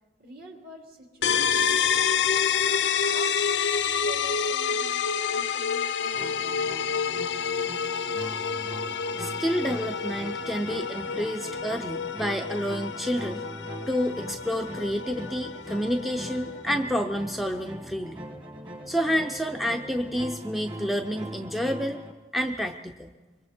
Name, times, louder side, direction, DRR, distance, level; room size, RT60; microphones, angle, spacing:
voice 1, 0.2-1.9 2.5-6.4, equal, 55° right, 1 dB, 2.9 m, -47 dB
sound 1, 1.2-16.8, left 7 dB, 90° left, 0.6 m, -28 dB
sound 2, 6.1-22.1, equal, 25° right, 1.9 m, -41 dB
voice 2, 9.2-13.5 13.9-18.2 18.9-22.0 22.3-23.1, equal, ahead, 3 dB, 0.5 m, -29 dB
25.0 x 23.5 x 4.4 m, 1.2 s
head